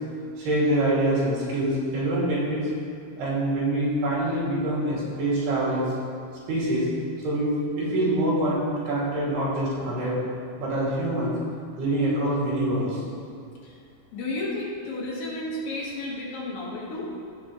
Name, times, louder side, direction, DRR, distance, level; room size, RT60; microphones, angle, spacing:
voice 1, 0.4-2.7 3.2-5.9 6.5-6.9 7.2-7.5 7.8-10.2 10.6-11.3 11.8-13.0, right 1 dB, 90° right, -8 dB, 4.8 m, -25 dB
voice 2, 14.1-17.1, left 2 dB, 65° left, -5 dB, 3.3 m, -32 dB
17.0 x 6.1 x 3.2 m, 2.4 s
omnidirectional pair, 4.5 m